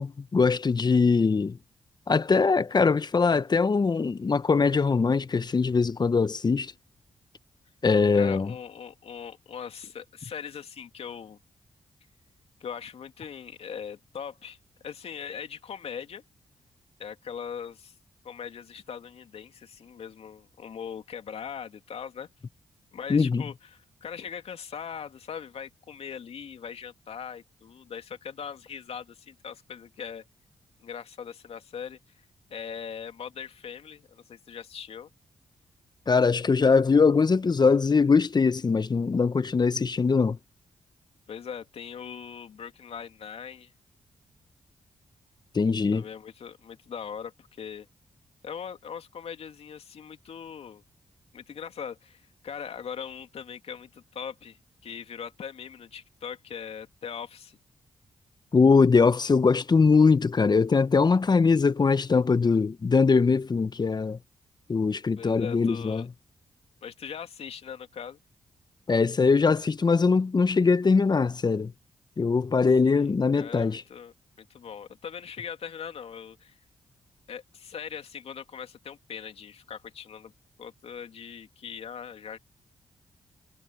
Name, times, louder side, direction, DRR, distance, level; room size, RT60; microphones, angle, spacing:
voice 1, 0.0-1.6 2.1-6.7 7.8-8.5 23.1-23.4 36.1-40.4 45.5-46.0 58.5-64.2 64.7-66.1 68.9-71.7 72.2-73.8, left 4 dB, 40° left, 1.0 m, -22 dB
voice 2, 8.2-11.4 12.6-14.6 14.8-16.2 17.0-18.0 18.2-22.3 22.9-30.2 30.8-32.0 32.5-35.1 41.3-43.7 45.9-47.9 48.4-50.8 51.3-57.6 65.2-66.1 66.8-68.2 72.8-76.6 77.3-80.3 80.6-82.4, left 7 dB, 70° left, 2.7 m, -40 dB
supercardioid pair, 45°, 11 cm